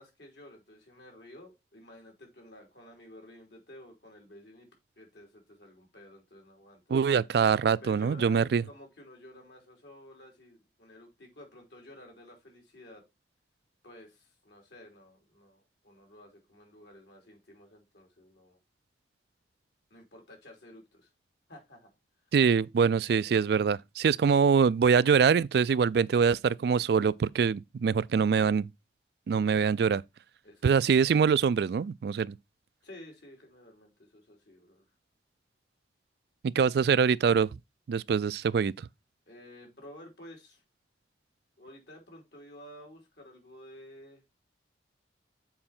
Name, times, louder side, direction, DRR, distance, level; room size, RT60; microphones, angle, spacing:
voice 1, 0.0-4.7 5.0-6.9 7.6-13.0 13.8-18.6 19.9-21.1 21.5-21.9 30.4-30.7 32.8-34.9 39.3-40.6 41.6-44.2, left 1 dB, 70° left, 3.5 m, -52 dB
voice 2, 6.9-8.6 22.3-28.7 29.3-30.0 30.6-32.3 36.4-37.5 37.9-38.7, right 6 dB, 60° right, 0.3 m, -24 dB
7.6 x 4.7 x 4.3 m
head